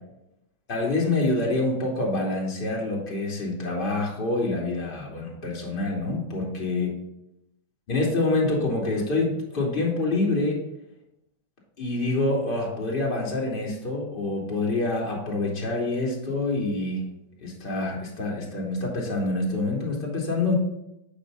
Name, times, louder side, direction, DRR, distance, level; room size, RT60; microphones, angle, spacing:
voice 1, 0.7-6.9 7.9-10.6 11.8-17.0 17.4-20.5, left 2 dB, 55° left, -3 dB, 2.8 m, -26 dB
6.6 x 5.5 x 4.0 m, 0.85 s
hypercardioid pair, 105°, 0 cm